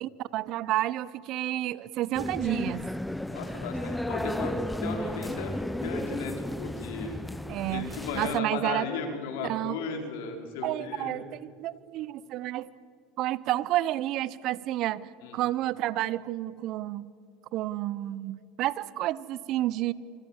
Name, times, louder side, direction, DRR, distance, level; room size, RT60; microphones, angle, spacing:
voice 1, 0.0-2.9 7.5-8.9 9.4-9.8 10.6-12.7 13.2-17.0 17.5-19.9, right 15 dB, 55° right, 19 dB, 0.9 m, -30 dB
sound 1, 2.1-8.4, left 1 dB, 5° left, 0.8 m, -34 dB
voice 2, 3.3-5.5 5.8-7.2 7.7-11.2 15.2-15.4, left 4 dB, 75° left, 4 dB, 4.8 m, -35 dB
28.0 x 25.5 x 7.4 m, 2.4 s
hypercardioid pair, 90°, 0 cm